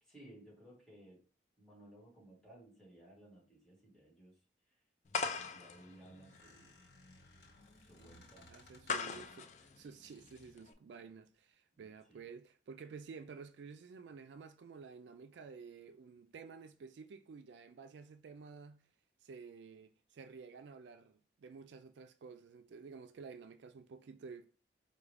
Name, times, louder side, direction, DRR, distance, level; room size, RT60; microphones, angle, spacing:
voice 1, 0.0-1.2 1.6-4.4 4.7-4.8 5.5-6.8 7.8-8.5 11.7-12.3, right 1 dB, ahead, 1.6 m, -59 dB
sound 1, 5.1-10.7, left 5 dB, 40° left, 0.4 m, -42 dB
Squeak, 5.2-9.5 10.1-10.6, left 1 dB, 65° left, 1.2 m, -63 dB
voice 2, 8.5-18.8 19.2-24.5, right 5 dB, 75° right, 0.3 m, -52 dB
4.7 x 2.3 x 3.3 m
head